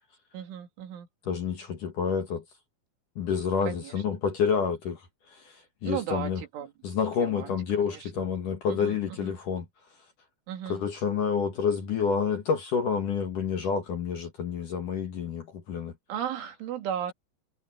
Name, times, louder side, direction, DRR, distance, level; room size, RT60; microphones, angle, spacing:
voice 1, 0.3-1.1 3.6-3.9 5.8-6.7 7.1-8.3 8.7-9.3 10.5-10.8 16.1-17.1, right 9 dB, 85° right, 5.1 m, -36 dB
voice 2, 1.3-2.4 3.2-6.4 6.8-9.7 10.7-15.9, left 6 dB, 55° left, 2.7 m, -29 dB
omnidirectional pair, 5.4 m